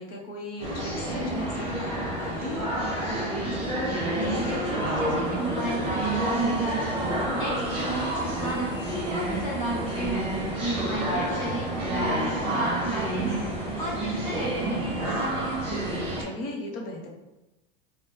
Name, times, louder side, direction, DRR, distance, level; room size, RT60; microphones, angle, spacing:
voice 1, 0.0-2.7 10.9-11.5 16.2-17.1, left 1 dB, 75° left, 0 dB, 0.9 m, -37 dB
sound 1, 0.6-16.2, right 1 dB, 20° right, 1.2 m, -29 dB
voice 2, 3.4-3.9 4.2-7.0 7.3-8.8 9.1-15.6, right 2 dB, 25° left, -4 dB, 0.8 m, -33 dB
4.5 x 2.3 x 3.1 m, 1.0 s
supercardioid pair, 175°, 29 cm